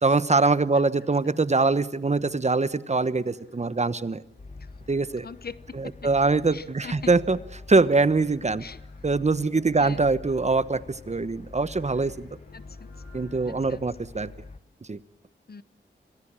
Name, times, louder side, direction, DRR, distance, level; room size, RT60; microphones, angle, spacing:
voice 1, 0.0-4.2 4.9-5.3 5.7-7.4 7.7-8.6 9.0-12.1 13.1-14.3 14.9-15.0, right 3 dB, 35° right, 15 dB, 1.0 m, -23 dB
sound 1, 2.9-13.5, left 4 dB, 85° left, 6.1 m, -57 dB
sound 2, 4.4-14.6, left 3 dB, 35° left, 1.3 m, -45 dB
voice 2, 5.2-5.9 6.5-7.1 8.6-8.8 9.8-10.0 12.5-12.9 13.5-13.8 15.5-15.6, left 5 dB, 55° left, 16 dB, 1.0 m, -41 dB
26.5 x 19.0 x 8.8 m, 0.74 s
wide cardioid pair, 75°, 19 cm